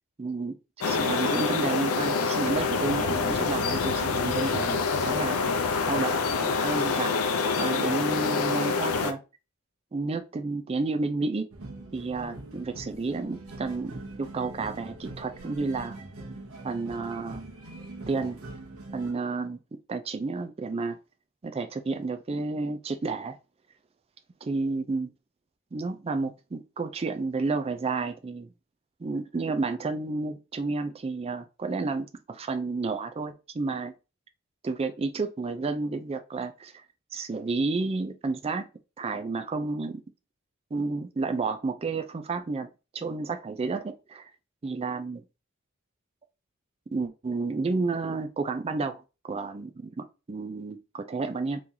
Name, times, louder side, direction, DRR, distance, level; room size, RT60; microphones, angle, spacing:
voice 1, 0.2-0.6 0.8-5.5 5.9-7.2 7.6-9.2 9.9-11.5 11.9-16.0 16.6-17.4 18.1-18.4 18.9-19.6 19.9-21.0 21.4-23.4 24.4-25.1 25.7-28.5 29.0-33.9 34.6-36.7 37.1-38.7 39.0-40.0 40.7-44.3 44.6-45.2 46.9-51.6, right 3 dB, 30° right, 0.4 m, -31 dB
sound 1, 0.8-9.1, left 4 dB, 90° left, 0.5 m, -26 dB
sound 2, 11.5-19.1, right 2 dB, 90° right, 1.0 m, -42 dB
3.8 x 3.1 x 2.6 m
head